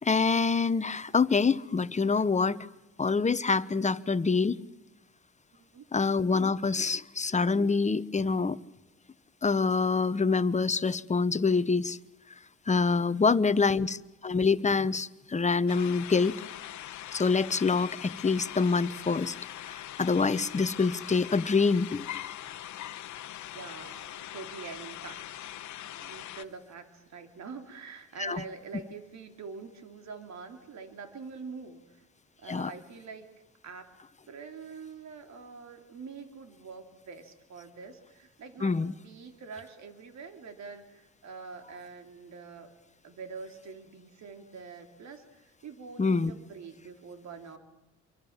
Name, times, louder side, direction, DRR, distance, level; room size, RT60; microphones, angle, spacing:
voice 1, 0.0-2.7 3.0-4.6 5.9-8.6 9.4-12.0 12.7-16.4 17.1-19.3 19.7-22.0 28.2-28.4 32.5-32.7 38.6-38.9 46.0-46.3, left 4 dB, 25° left, 1.1 m, -26 dB
voice 2, 5.5-5.8 13.1-13.6 23.5-25.6 26.0-32.0 32.4-33.3 33.6-33.9 34.3-38.8 39.0-42.7 43.0-47.6, right 5 dB, 65° right, 3.3 m, -45 dB
sound 1, 15.7-26.5, left 12 dB, 70° left, 1.2 m, -42 dB
27.0 x 23.5 x 7.4 m
cardioid pair, 90°, 30 cm